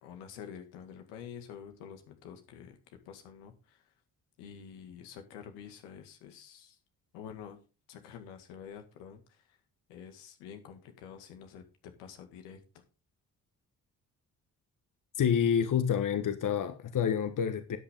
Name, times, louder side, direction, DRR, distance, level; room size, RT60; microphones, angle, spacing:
voice 1, 0.0-2.8 3.1-3.8 4.4-6.8 7.1-7.6 7.9-9.6 9.9-12.6, left 8 dB, 80° left, 2.1 m, -48 dB
voice 2, 15.2-17.8, left 8 dB, 50° left, 1.3 m, -28 dB
12.5 x 9.0 x 3.7 m
hypercardioid pair, 45°, 41 cm